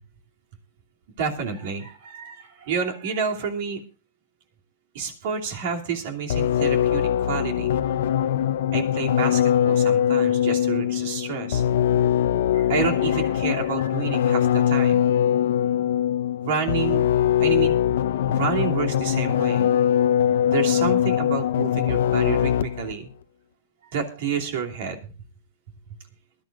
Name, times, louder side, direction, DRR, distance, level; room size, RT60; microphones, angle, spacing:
voice 1, 1.2-3.8 4.9-7.8 8.7-11.6 12.5-15.1 16.4-17.0 17.4-17.8 18.3-19.7 20.5-23.1 23.9-25.1, right 6 dB, 60° right, 2 dB, 2.9 m, -29 dB
sound 1, 6.3-22.9, left 10 dB, 70° left, 0.6 m, -22 dB
22.5 x 11.5 x 2.6 m, 0.34 s
hypercardioid pair, 125°, 0 cm